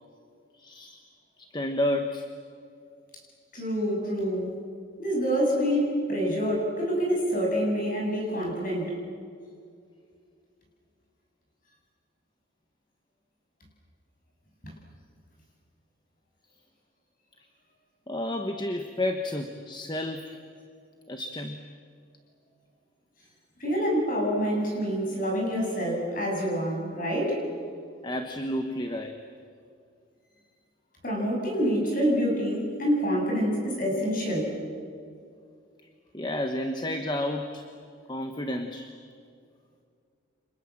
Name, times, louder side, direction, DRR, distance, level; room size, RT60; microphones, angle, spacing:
voice 1, 0.5-1.0 1.4-2.3 18.1-20.4 21.1-21.6 28.0-29.2 36.1-37.7 38.1-38.9, left 1 dB, 20° left, 6 dB, 1.2 m, -31 dB
voice 2, 3.5-4.5 5.0-8.9 23.6-27.4 31.0-34.5, equal, 40° left, -1 dB, 7.8 m, -27 dB
29.5 x 26.5 x 7.5 m, 2.3 s
head